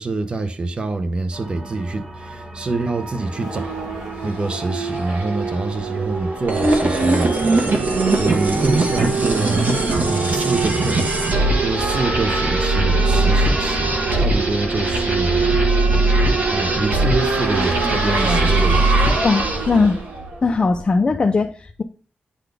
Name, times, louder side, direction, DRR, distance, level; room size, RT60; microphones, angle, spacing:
voice 1, 0.0-3.7 4.2-9.6 10.0-11.0 11.6-15.6 16.5-18.9, right 3 dB, 35° right, 0.8 m, -26 dB
sound 1, 1.3-16.6, right 1 dB, 15° right, 1.0 m, -40 dB
Race car auto racing / Accelerating revving vroom, 2.8-21.0, right 4 dB, 85° right, 1.9 m, -26 dB
sound 2, 6.5-19.7, right 2 dB, 70° right, 1.5 m, -20 dB
voice 2, 19.2-20.0 20.4-21.8, left 4 dB, 35° left, 0.5 m, -19 dB
9.8 x 4.0 x 3.4 m
wide cardioid pair, 140°, 3 cm